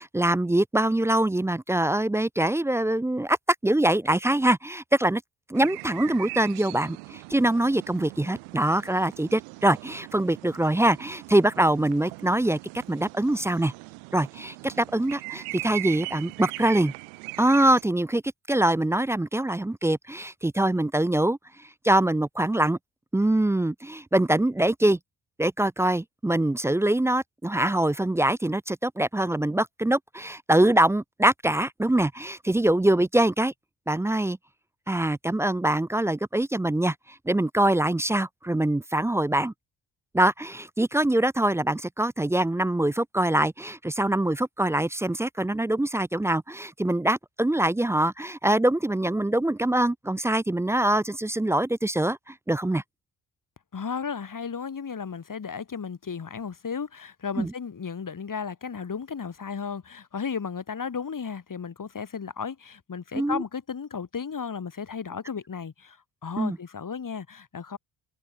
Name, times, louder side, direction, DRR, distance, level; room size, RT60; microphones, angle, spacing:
voice 1, 0.0-3.4 3.6-5.2 5.5-12.6 12.9-13.7 14.1-16.9 17.4-18.2 18.5-21.4 21.8-22.8 23.1-25.0 25.4-33.5 33.9-34.4 34.9-36.9 37.3-39.5 40.1-52.8 57.4-57.5 63.1-63.4 66.4-66.6, right 1 dB, 5° right, 0.3 m, -24 dB
sound 1, 5.5-17.8, right 32 dB, 90° right, 2.8 m, -40 dB
voice 2, 53.7-67.8, left 6 dB, 40° left, 3.4 m, -34 dB
supercardioid pair, 55°, 49 cm